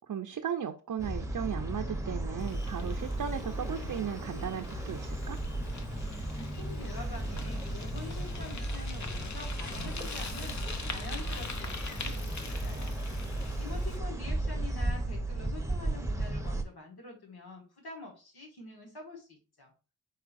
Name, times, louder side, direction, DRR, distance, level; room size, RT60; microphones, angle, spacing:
voice 1, 0.1-5.4, right 8 dB, 55° right, 0.6 m, -36 dB
sound 1, 1.0-16.6, right 1 dB, 10° right, 0.8 m, -35 dB
Bicycle, 2.4-14.0, left 3 dB, 50° left, 0.7 m, -42 dB
voice 2, 6.2-13.0 13.6-19.7, left 3 dB, 85° left, 1.4 m, -46 dB
4.7 x 4.3 x 2.5 m
cardioid pair, 55°, 38 cm